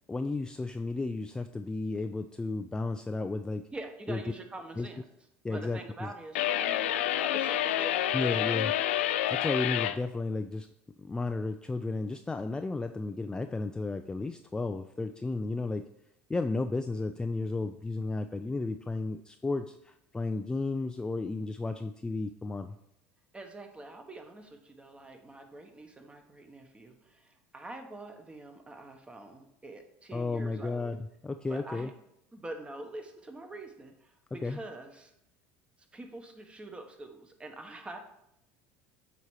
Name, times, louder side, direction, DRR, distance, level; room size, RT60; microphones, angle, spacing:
voice 1, 0.1-3.7 4.1-4.2 4.8-4.9 5.4-6.1 8.1-8.7 9.3-10.7 11.0-15.9 16.3-22.7 30.1-31.0 31.2-31.9 34.3-34.6, left 3 dB, 10° left, 7 dB, 0.3 m, -33 dB
voice 2, 3.7-8.6 23.3-30.9 31.4-31.9 32.3-35.1 35.9-38.0, right 2 dB, 15° right, 5 dB, 1.1 m, -45 dB
sound 1, 6.3-10.0, left 12 dB, 85° left, 0.4 m, -28 dB
8.0 x 3.0 x 4.8 m, 0.80 s
hypercardioid pair, 90°, 6 cm